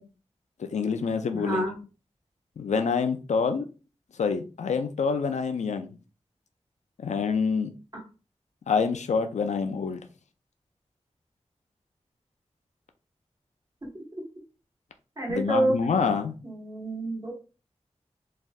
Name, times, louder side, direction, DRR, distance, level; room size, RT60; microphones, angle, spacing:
voice 1, 0.6-1.6 2.6-3.7 4.2-5.9 7.0-7.7 8.7-10.0 15.3-16.4, left 5 dB, 90° left, 7 dB, 0.4 m, -26 dB
voice 2, 1.3-1.8 7.9-8.0 15.2-15.8 16.4-17.3, right 1 dB, 30° right, -2 dB, 1.4 m, -28 dB
3.2 x 2.6 x 2.3 m, 0.33 s
wide cardioid pair, 70°, 12 cm